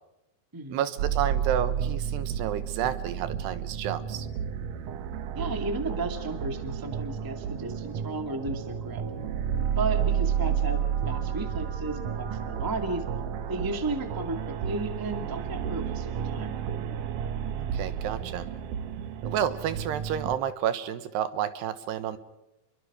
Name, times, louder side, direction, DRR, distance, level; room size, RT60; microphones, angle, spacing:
voice 1, 0.7-4.3 17.6-18.5 19.2-22.2, right 10 dB, 85° right, 12 dB, 3.4 m, -30 dB
sound 1, 1.0-20.4, right 8 dB, 65° right, 2.2 m, -31 dB
voice 2, 5.3-9.0 9.8-13.0 13.5-16.5, right 2 dB, 10° right, 6 dB, 1.0 m, -34 dB
29.5 x 23.0 x 4.9 m, 0.91 s
omnidirectional pair, 4.7 m